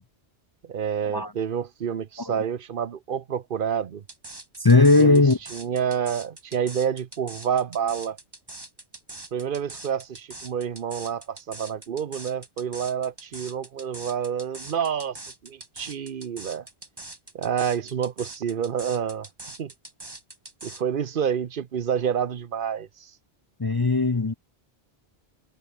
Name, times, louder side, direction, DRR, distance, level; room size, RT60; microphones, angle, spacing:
voice 1, 0.6-4.0 5.0-5.2 5.5-8.2 9.3-16.7 17.3-19.3 19.6-19.7 20.6-23.1, right 8 dB, 55° right, 0.9 m, -28 dB
sound 1, 4.1-20.8, right 2 dB, 20° right, 1.8 m, -42 dB
voice 2, 4.6-5.4 23.6-24.3, left 3 dB, 25° left, 0.6 m, -18 dB
omnidirectional pair, 1.1 m